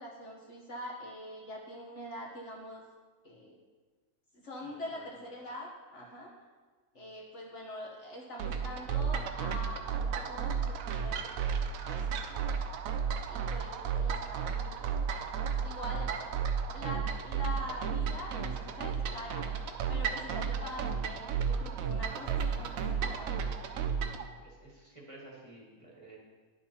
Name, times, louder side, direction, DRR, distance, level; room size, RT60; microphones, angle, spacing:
voice 1, 0.0-2.8 3.2-3.6 4.4-6.3 6.9-11.5 11.8-12.4 13.3-15.1 15.6-16.1 16.7-19.5 19.9-23.6, left 1 dB, 50° left, -2 dB, 1.2 m, -44 dB
voice 2, 4.6-5.1 16.1-16.2 24.4-26.2, right 2 dB, 20° right, -5 dB, 1.4 m, -53 dB
sound 1, 8.4-24.2, right 6 dB, 70° right, 0.9 m, -33 dB
9.9 x 7.1 x 2.9 m, 1.4 s
omnidirectional pair, 1.7 m